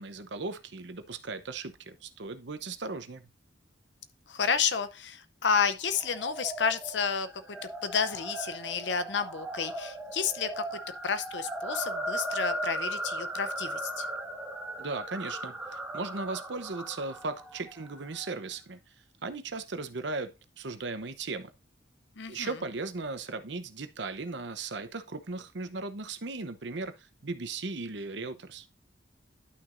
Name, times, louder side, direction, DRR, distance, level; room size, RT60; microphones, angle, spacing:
voice 1, 0.0-3.3 14.8-18.8 19.2-21.5 22.3-27.0 27.2-28.6, right 3 dB, 70° right, 0.8 m, -37 dB
voice 2, 4.3-7.3 7.8-14.0 22.2-22.5, left 6 dB, 70° left, 0.7 m, -31 dB
sound 1, 5.9-18.3, right 1 dB, 10° right, 1.3 m, -38 dB
11.5 x 6.0 x 2.6 m
head